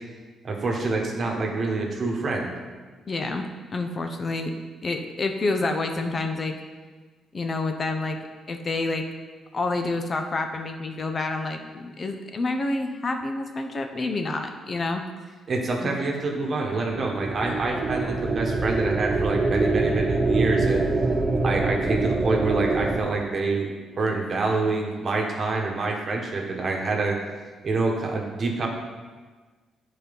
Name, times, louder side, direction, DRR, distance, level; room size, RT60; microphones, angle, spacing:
voice 1, 0.4-2.5 15.5-20.8 21.4-23.7 24.0-27.2 27.6-28.7, right 3 dB, 45° right, 0 dB, 1.5 m, -26 dB
voice 2, 3.1-3.4 3.7-4.5 4.8-6.5 7.3-8.2 8.5-9.0 9.5-15.0 15.8-15.9, left 2 dB, 35° left, 5 dB, 0.7 m, -28 dB
sound 1, 16.9-23.0, right 3 dB, 20° right, 0.9 m, -24 dB
9.1 x 4.3 x 5.4 m, 1.4 s
cardioid pair, 90°, 0 cm